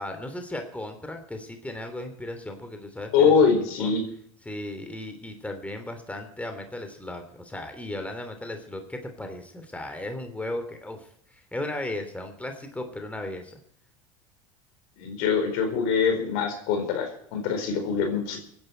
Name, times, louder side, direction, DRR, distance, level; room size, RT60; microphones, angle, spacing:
voice 1, 0.0-3.3 3.8-3.9 4.4-13.6, left 1 dB, 10° left, 6 dB, 3.2 m, -36 dB
voice 2, 3.1-4.0 15.0-18.4, left 6 dB, 65° left, 5 dB, 4.7 m, -23 dB
24.5 x 10.5 x 4.5 m, 0.67 s
hypercardioid pair, 80°, 17 cm